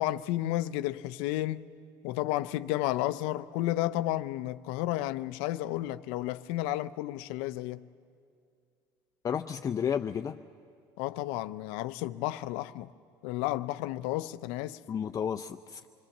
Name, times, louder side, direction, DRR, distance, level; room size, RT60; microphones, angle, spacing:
voice 1, 0.0-1.7 2.0-7.8 11.0-12.9 13.2-14.8, left 15 dB, 85° left, 0.6 m, -32 dB
voice 2, 9.2-10.4 14.9-15.9, left 8 dB, 35° left, 0.5 m, -32 dB
26.0 x 22.0 x 7.3 m
cardioid pair, 105°, 10 cm